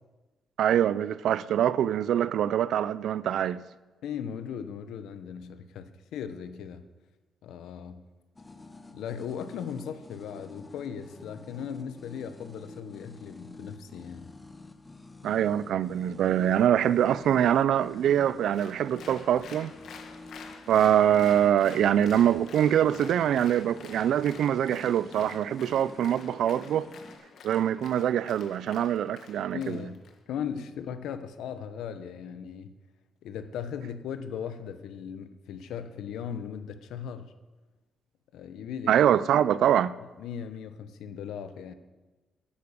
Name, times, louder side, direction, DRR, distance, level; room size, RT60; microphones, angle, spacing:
voice 1, 0.6-3.6 15.2-19.7 20.7-26.9 27.4-29.8 38.9-39.9, right 10 dB, 65° right, 0.4 m, -24 dB
voice 2, 4.0-6.9 7.4-8.1 8.9-14.3 29.5-30.0 30.3-32.7 33.2-37.3 38.3-38.9 40.2-41.7, left 8 dB, 85° left, 0.9 m, -38 dB
sound 1, 8.4-27.2, left 2 dB, 15° left, 0.8 m, -48 dB
Applause, 18.5-30.2, left 5 dB, 60° left, 1.3 m, -49 dB
10.5 x 8.6 x 7.0 m
cardioid pair, 165°, 0 cm